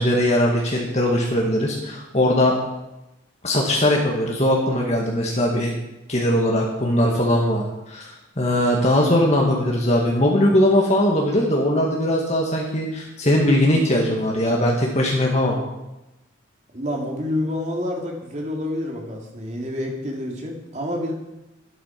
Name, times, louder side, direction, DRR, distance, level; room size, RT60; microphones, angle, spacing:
voice 1, 0.0-2.6 3.4-5.7 6.1-15.6, left 1 dB, 35° left, -1 dB, 2.0 m, -20 dB
voice 2, 16.7-21.1, left 1 dB, 35° right, 1 dB, 2.9 m, -28 dB
13.0 x 11.5 x 6.0 m, 0.97 s
head